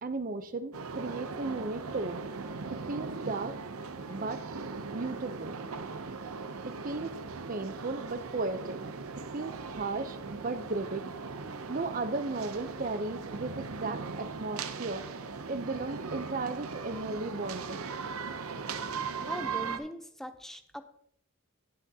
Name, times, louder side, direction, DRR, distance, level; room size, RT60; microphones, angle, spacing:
voice 1, 0.0-2.2 2.7-3.6 4.1-4.4 4.9-5.6 6.6-7.1 7.5-8.8 9.3-11.1 11.7-15.0 15.5-17.9, right 3 dB, 40° right, 11 dB, 0.6 m, -35 dB
sound 1, 0.7-19.8, right 4 dB, 85° right, 0.7 m, -39 dB
voice 2, 19.2-20.8, equal, ahead, 9 dB, 0.6 m, -41 dB
18.0 x 6.1 x 2.8 m, 0.71 s
head